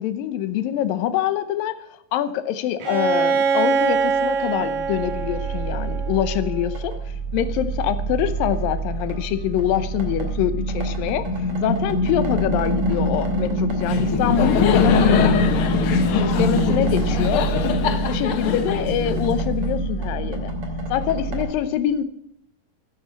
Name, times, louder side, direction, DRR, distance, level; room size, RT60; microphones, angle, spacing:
voice 1, 0.0-1.8 2.1-11.3 11.6-15.4 15.7-17.5 18.1-20.5 20.9-22.0, left 11 dB, 85° left, 12 dB, 2.6 m, -25 dB
Bowed string instrument, 2.8-6.6, right 6 dB, 75° right, 3.4 m, -23 dB
sound 1, 4.0-21.5, right 1 dB, 45° right, 3.5 m, -24 dB
Laughter, 13.8-19.7, left 8 dB, 65° left, 1.3 m, -23 dB
15.0 x 9.1 x 7.1 m, 0.78 s
omnidirectional pair, 3.9 m